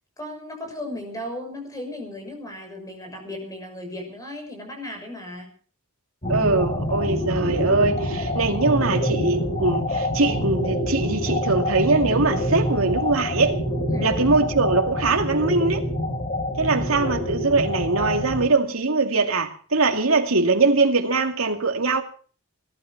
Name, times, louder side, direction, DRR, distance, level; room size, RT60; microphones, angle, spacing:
voice 1, 0.2-5.5 13.9-14.2, left 1 dB, 15° left, 6.4 m, -36 dB
sound 1, 6.2-18.5, equal, 35° left, 3.9 m, -26 dB
voice 2, 6.3-13.6 14.0-15.9 16.6-22.0, right 3 dB, 70° right, 2.4 m, -22 dB
19.5 x 12.0 x 5.9 m
head